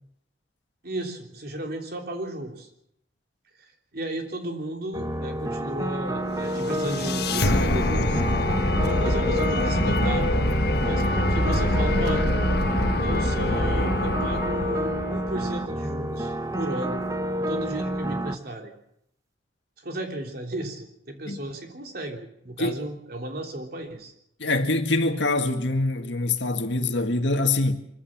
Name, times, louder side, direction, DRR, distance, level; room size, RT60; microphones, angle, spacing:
voice 1, 0.8-2.7 3.6-3.7 3.9-8.2 8.8-10.4 10.9-12.3 13.0-17.0 17.4-18.7 19.8-24.1, right 1 dB, 55° right, 3.4 m, -34 dB
sound 1, 4.9-18.3, right 1 dB, 20° right, 1.1 m, -29 dB
sound 2, 6.4-15.5, left 1 dB, 55° left, 1.3 m, -24 dB
voice 2, 24.4-27.7, left 2 dB, 75° left, 1.9 m, -24 dB
24.5 x 15.5 x 7.4 m
head